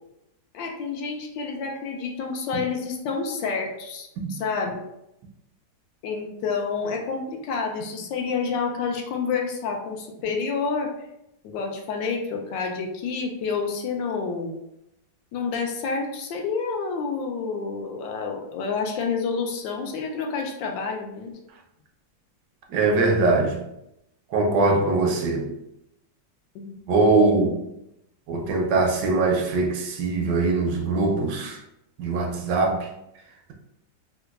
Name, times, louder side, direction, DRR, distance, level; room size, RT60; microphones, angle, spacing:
voice 1, 0.5-4.8 6.0-10.9 11.4-14.6 15.3-21.4 26.5-26.7, left 5 dB, 80° left, 1.3 m, -29 dB
voice 2, 22.7-23.6 24.3-25.5 26.9-27.5 28.3-31.6 32.0-32.9, right 3 dB, 75° right, 1.2 m, -22 dB
4.5 x 2.2 x 2.3 m
omnidirectional pair, 2.0 m